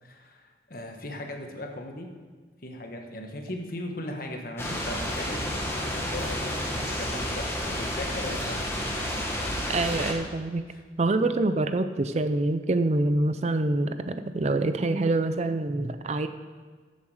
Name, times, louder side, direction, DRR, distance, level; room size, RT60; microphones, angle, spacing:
voice 1, 0.0-2.1 2.6-8.7 10.7-10.8 11.2-11.3, left 1 dB, 50° left, 3 dB, 1.3 m, -38 dB
sound 1, 4.6-10.1, left 1 dB, 15° left, 1.3 m, -30 dB
voice 2, 9.7-10.7 11.0-16.3, right 2 dB, 35° right, 10 dB, 0.4 m, -26 dB
14.5 x 7.1 x 4.8 m, 1.5 s
head